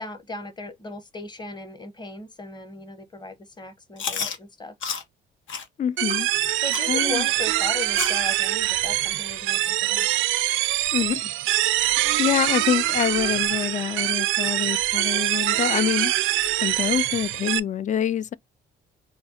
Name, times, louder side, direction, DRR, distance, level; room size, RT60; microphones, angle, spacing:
voice 1, 0.0-4.7 6.6-10.1, left 3 dB, 20° left, 1.0 m, -37 dB
Chewing mastication, 4.0-4.4 4.8-5.0 5.5-5.6 6.1-6.2 6.7-6.9 7.4-7.5 7.9-8.2 8.6-8.7 9.3-9.4 10.0-10.1 10.7-10.8, left 6 dB, 75° left, 1.0 m, -31 dB
voice 2, 5.8-6.3 6.9-7.3 10.9-11.3 11.8-16.1 16.6-18.3, left 9 dB, 40° left, 0.4 m, -26 dB
sound 1, 6.0-17.6, right 15 dB, 85° right, 0.4 m, -24 dB
5.0 x 2.4 x 2.8 m
cardioid pair, 90°, 20 cm